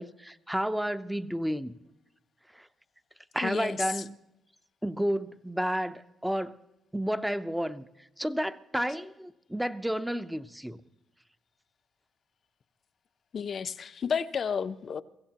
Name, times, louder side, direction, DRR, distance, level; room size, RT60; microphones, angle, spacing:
voice 1, 0.0-1.7 2.6-2.7 3.3-4.2 4.8-6.6 6.9-7.9 8.2-10.8, equal, 5° right, 0.7 m, -31 dB
voice 2, 3.4-4.0 13.3-15.0, left 6 dB, 50° left, 0.6 m, -32 dB
23.5 x 15.5 x 2.9 m
cardioid pair, 90°, 0 cm